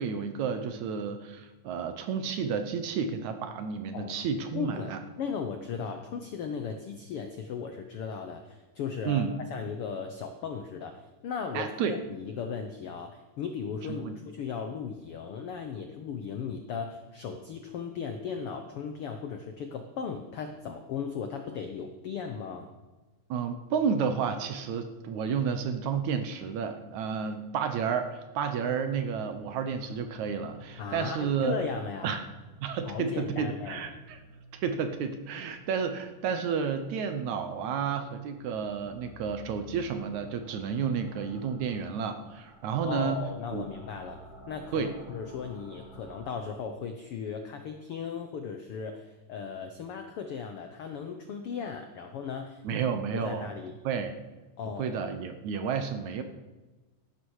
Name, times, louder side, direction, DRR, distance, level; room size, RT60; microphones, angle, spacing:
voice 1, 0.0-5.0 9.1-9.3 11.5-12.0 14.0-14.1 23.3-31.6 32.0-32.3 32.6-34.2 34.6-43.2 43.5-43.6 44.7-44.9 52.6-53.5 53.9-54.2 54.8-56.2, right 6 dB, 70° right, 8 dB, 2.1 m, -31 dB
voice 2, 4.5-22.7 30.8-32.2 32.9-34.0 42.8-52.8 53.1-53.7 54.6-55.0, left 6 dB, 85° left, 6 dB, 1.2 m, -37 dB
sound 1, 28.9-46.3, left 1 dB, ahead, 5.9 m, -53 dB
16.0 x 12.0 x 4.8 m, 1.2 s
omnidirectional pair, 3.9 m